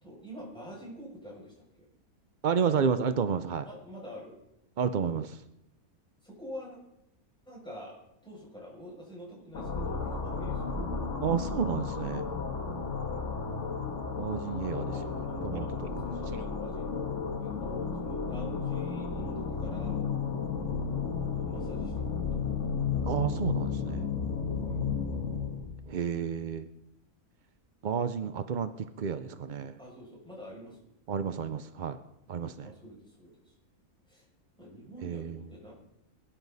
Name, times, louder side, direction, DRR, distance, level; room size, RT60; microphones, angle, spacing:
voice 1, 0.0-1.9 3.6-4.4 6.2-6.8 7.5-10.8 13.1-13.3 14.7-15.7 16.0-16.9 17.3-20.0 21.3-22.3 24.6-24.9 29.8-30.9 32.6-33.5 34.0-34.3 34.6-35.7, equal, 5° left, -5 dB, 6.5 m, -47 dB
voice 2, 2.4-3.6 4.8-5.4 11.2-12.3 14.2-14.9 15.4-15.6 16.3-16.4 23.0-24.1 25.9-26.7 27.8-29.8 31.1-32.0 32.3-32.7 35.0-35.5, right 7 dB, 60° right, 10 dB, 0.5 m, -31 dB
sound 1, 9.5-25.7, left 5 dB, 50° left, 1.8 m, -33 dB
21.5 x 11.5 x 4.1 m, 0.85 s
omnidirectional pair, 1.6 m